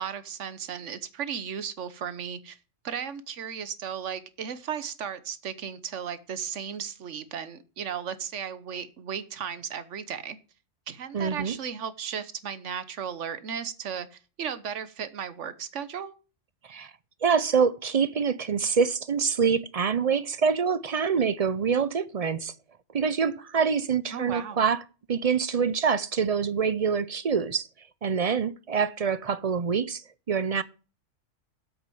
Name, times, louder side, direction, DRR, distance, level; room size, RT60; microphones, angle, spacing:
voice 1, 0.0-2.6 2.8-10.4 10.9-16.2 24.1-24.6, right 8 dB, 70° right, 1.3 m, -35 dB
voice 2, 11.1-11.6 16.6-16.9 17.2-22.5 22.9-24.8 25.1-27.7 28.0-30.0 30.3-30.6, right 6 dB, 50° right, 0.5 m, -25 dB
8.1 x 6.3 x 7.6 m
omnidirectional pair, 1.3 m